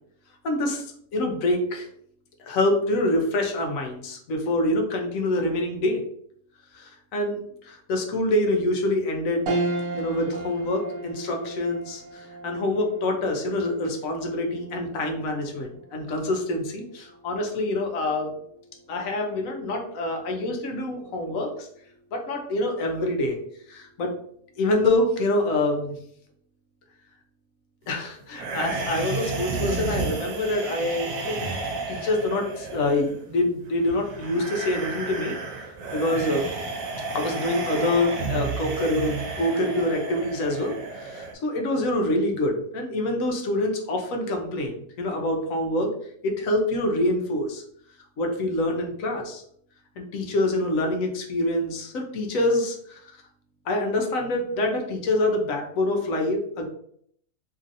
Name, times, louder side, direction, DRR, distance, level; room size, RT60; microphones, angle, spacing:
voice 1, 0.4-0.8 1.1-1.9 2.4-6.0 6.7-9.5 9.9-18.3 18.9-21.7 22.1-23.4 23.7-24.1 24.6-25.9 27.9-31.4 31.9-35.3 35.9-36.4 37.1-45.9 46.2-47.6 48.2-49.4 50.0-53.0 53.7-56.7, left 1 dB, 75° left, 2 dB, 1.1 m, -26 dB
sound 1, 9.5-19.1 19.5-19.6 21.0-21.4, right 2 dB, 55° right, 0.7 m, -36 dB
sound 2, 28.3-41.3, right 3 dB, 90° right, 1.1 m, -32 dB
3.0 x 2.7 x 2.5 m, 0.65 s
omnidirectional pair, 1.4 m